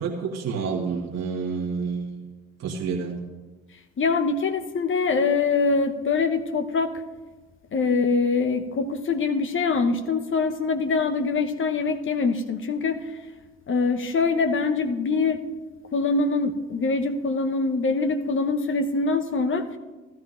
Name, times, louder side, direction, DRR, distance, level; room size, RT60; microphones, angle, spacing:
voice 1, 0.0-2.3 2.6-3.2, right 5 dB, 60° right, -1 dB, 1.5 m, -29 dB
voice 2, 4.0-6.9 7.7-13.1 13.7-15.4 15.9-19.7, left 4 dB, 45° left, 7 dB, 1.0 m, -24 dB
14.5 x 13.0 x 2.5 m, 1.2 s
hypercardioid pair, 45°, 30 cm